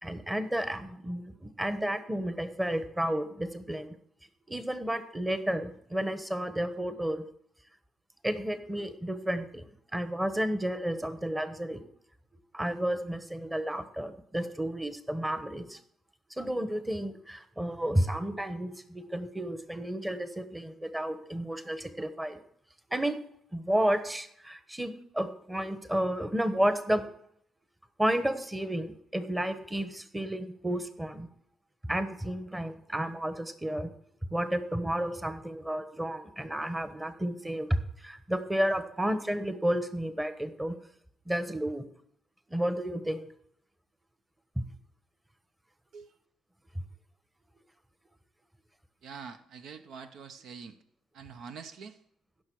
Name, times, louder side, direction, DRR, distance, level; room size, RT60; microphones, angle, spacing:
voice 1, 0.0-3.9 4.5-7.2 8.2-9.6 9.9-11.8 12.5-15.8 16.4-22.4 22.9-23.1 23.5-27.1 28.0-31.3 31.8-33.9 34.3-40.8 41.3-41.8 42.5-43.2 44.6-44.7, right 1 dB, 10° right, 10 dB, 1.1 m, -31 dB
voice 2, 49.0-50.8 51.1-52.0, right 6 dB, 75° right, 9 dB, 0.8 m, -45 dB
16.5 x 6.4 x 4.7 m, 0.69 s
cardioid pair, 90°, 0 cm